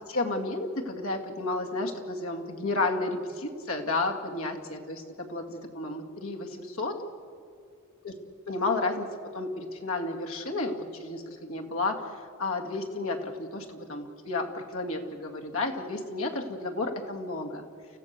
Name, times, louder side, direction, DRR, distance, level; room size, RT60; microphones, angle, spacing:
voice 1, 0.1-7.0 8.0-8.1 8.5-17.6, left 2 dB, 80° left, 2 dB, 2.2 m, -32 dB
29.5 x 15.5 x 6.7 m, 2.5 s
head